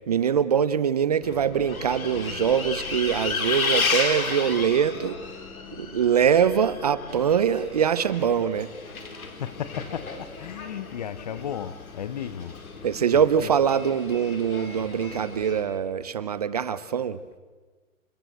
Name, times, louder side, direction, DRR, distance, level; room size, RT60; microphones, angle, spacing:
voice 1, 0.1-5.2 5.8-8.7 12.8-17.2, right 8 dB, 30° right, 0.6 m, -23 dB
Bus, 1.2-15.6, left 4 dB, 80° left, 4.2 m, -33 dB
voice 2, 9.4-12.6 13.1-13.5, left 9 dB, 30° left, 0.7 m, -34 dB
29.0 x 15.5 x 7.9 m
hypercardioid pair, 160°, 42 cm